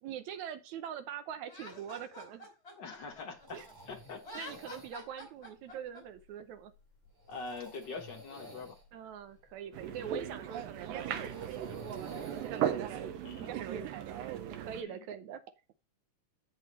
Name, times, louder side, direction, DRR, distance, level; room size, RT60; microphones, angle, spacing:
voice 1, 0.0-2.5 3.5-3.7 4.3-6.7 8.9-13.1 13.4-15.4, right 9 dB, 70° right, 1.9 m, -44 dB
Laughter, 1.5-3.7 4.2-6.0, left 1 dB, 20° left, 2.9 m, -47 dB
voice 2, 2.8-3.4 3.9-4.2 7.3-8.7 10.0-10.1 13.2-13.5 14.8-15.0, left 4 dB, 55° left, 1.2 m, -43 dB
sound 1, 3.0-12.6, left 1 dB, 25° right, 5.0 m, -55 dB
sound 2, 9.7-14.8, right 9 dB, 90° right, 2.6 m, -37 dB
8.0 x 6.2 x 4.1 m
omnidirectional pair, 3.8 m